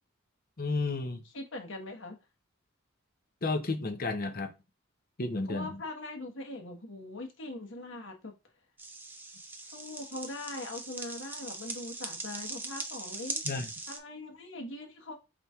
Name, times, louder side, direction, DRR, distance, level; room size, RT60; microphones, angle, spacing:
voice 1, 0.6-1.2 3.4-4.5 5.2-5.8 13.5-13.7, left 3 dB, 45° left, 0.7 m, -32 dB
voice 2, 1.2-2.2 5.5-8.3 9.6-13.4 13.9-15.2, left 2 dB, 60° left, 1.2 m, -41 dB
sound 1, 8.8-14.0, right 3 dB, 10° right, 0.4 m, -40 dB
4.9 x 4.3 x 2.4 m
head